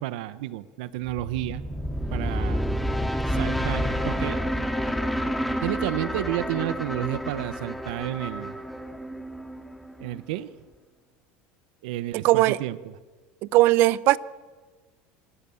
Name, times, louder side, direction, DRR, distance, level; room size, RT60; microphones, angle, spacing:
voice 1, 0.0-1.6 2.1-2.6 3.3-4.4 5.6-8.6 10.0-10.5 11.8-12.9, right 14 dB, 80° right, 15 dB, 1.0 m, -31 dB
sound 1, 1.1-10.2, equal, ahead, 2.2 m, -29 dB
voice 2, 12.1-12.6 13.5-14.2, right 17 dB, 60° right, 19 dB, 0.8 m, -18 dB
26.0 x 19.5 x 7.1 m, 1.3 s
supercardioid pair, 120°, 4 cm